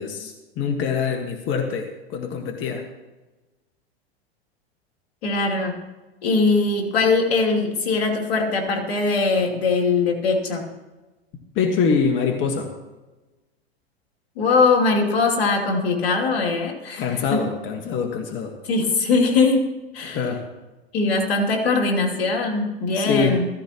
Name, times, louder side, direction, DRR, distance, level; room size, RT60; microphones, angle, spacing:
voice 1, 0.0-2.8 11.5-12.7 17.0-18.5 20.0-20.4 22.9-23.4, left 5 dB, 40° left, 4 dB, 1.6 m, -24 dB
voice 2, 5.2-5.8 6.2-10.7 14.4-17.5 18.6-20.3 20.9-23.5, left 3 dB, 75° left, 1 dB, 2.8 m, -21 dB
15.0 x 14.5 x 3.0 m, 1.1 s
hypercardioid pair, 110°, 31 cm